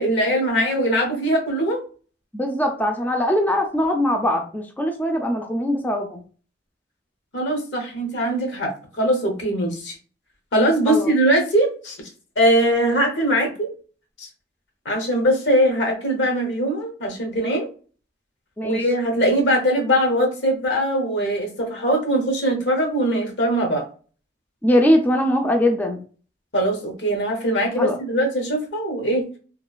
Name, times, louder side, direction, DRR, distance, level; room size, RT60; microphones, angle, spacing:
voice 1, 0.0-1.8 7.3-10.0 10.5-12.0 12.4-13.7 14.2-14.3 14.8-17.7 18.6-23.9 26.5-29.2, right 1 dB, 80° left, 2 dB, 0.9 m, -21 dB
voice 2, 2.3-6.2 10.9-11.1 18.6-18.8 24.6-26.0 27.8-28.0, left 1 dB, 10° left, 3 dB, 0.3 m, -21 dB
2.9 x 2.2 x 2.3 m, 0.40 s
head